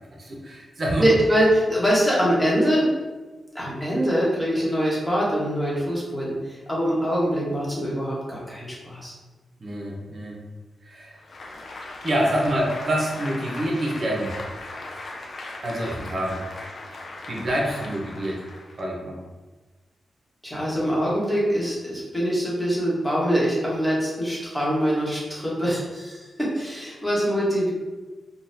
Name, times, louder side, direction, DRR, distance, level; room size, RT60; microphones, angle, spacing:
voice 1, 0.2-1.1 9.6-10.4 10.8-11.2 12.0-14.4 15.6-16.4 17.3-18.4 18.8-19.2, right 1 dB, 55° right, -2 dB, 0.8 m, -26 dB
voice 2, 1.0-2.9 3.5-9.1 20.4-27.7, equal, 5° left, -6 dB, 1.2 m, -23 dB
Applause, 11.2-18.9, left 2 dB, 55° left, 0.4 m, -38 dB
3.9 x 2.3 x 2.6 m, 1.3 s
cardioid pair, 80°, 0 cm